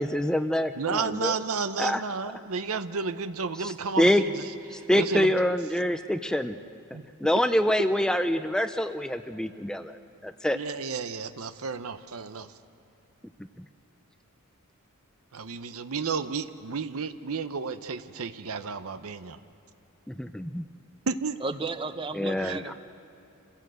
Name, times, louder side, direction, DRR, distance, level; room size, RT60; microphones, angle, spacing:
voice 1, 0.0-1.3 1.8-2.0 3.6-4.2 4.7-6.5 7.2-10.0 10.2-10.6 20.1-20.7 22.2-22.7, left 1 dB, 5° left, 9 dB, 0.4 m, -26 dB
voice 2, 0.8-4.4 4.7-5.3 6.9-7.1 10.5-12.5 15.3-19.4 21.1-21.4 22.3-22.6, right 5 dB, 70° right, 12 dB, 0.8 m, -32 dB
voice 3, 21.4-22.7, right 3 dB, 25° right, 10 dB, 0.9 m, -33 dB
27.5 x 16.0 x 7.8 m, 2.8 s
head